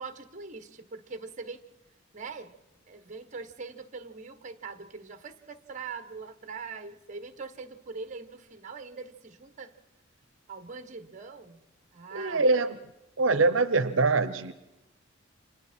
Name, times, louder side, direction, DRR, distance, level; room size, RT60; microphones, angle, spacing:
voice 1, 0.0-1.6 2.1-2.6 2.9-9.7 10.5-11.6 11.9-12.5, right 4 dB, 35° right, 10 dB, 1.2 m, -42 dB
voice 2, 12.1-12.8 13.2-14.5, right 3 dB, 70° right, 13 dB, 0.8 m, -24 dB
29.5 x 26.0 x 4.4 m, 0.98 s
head